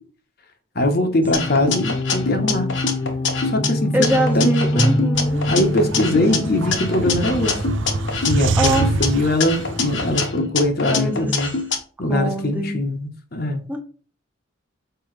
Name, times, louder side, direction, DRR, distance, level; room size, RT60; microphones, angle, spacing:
voice 1, 0.7-2.7 3.4-4.0 4.3-5.0 5.5-7.6 8.2-11.5 12.0-13.6, left 1 dB, 50° left, 1.1 m, -21 dB
sound 1, 1.2-10.4, left 1 dB, 30° left, 0.3 m, -27 dB
sound 2, 1.3-3.7 4.0-6.4 6.7-9.1 9.4-11.8, left 4 dB, 65° left, 1.2 m, -25 dB
voice 2, 3.9-5.4 8.6-8.9 10.9-11.3 12.1-12.8 13.7-13.8, right 1 dB, 10° right, 1.1 m, -23 dB
sound 3, 5.1-10.3, right 3 dB, 70° right, 0.6 m, -26 dB
6.9 x 4.9 x 3.2 m
head